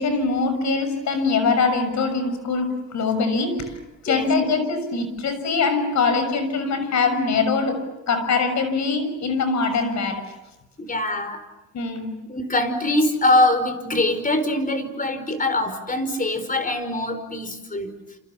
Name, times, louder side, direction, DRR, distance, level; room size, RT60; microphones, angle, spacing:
voice 1, 0.0-3.7 4.0-10.2 11.7-12.1, left 4 dB, 65° left, 9 dB, 6.6 m, -23 dB
voice 2, 10.8-11.4 12.3-17.9, left 2 dB, 25° left, 10 dB, 5.0 m, -23 dB
29.0 x 28.0 x 7.2 m, 0.97 s
cardioid pair, 90°, 30 cm